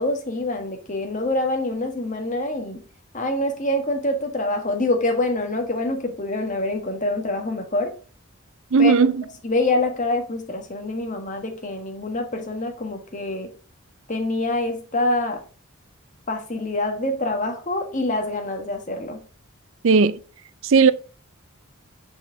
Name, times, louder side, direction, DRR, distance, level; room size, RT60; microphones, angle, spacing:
voice 1, 0.0-2.8 3.1-7.9 8.8-8.9 9.4-13.5 14.1-15.4 16.3-19.2, left 2 dB, 35° left, 1.3 m, -25 dB
voice 2, 8.7-9.2 19.8-20.2 20.6-20.9, right 5 dB, 60° right, 0.4 m, -16 dB
6.2 x 5.6 x 3.8 m
head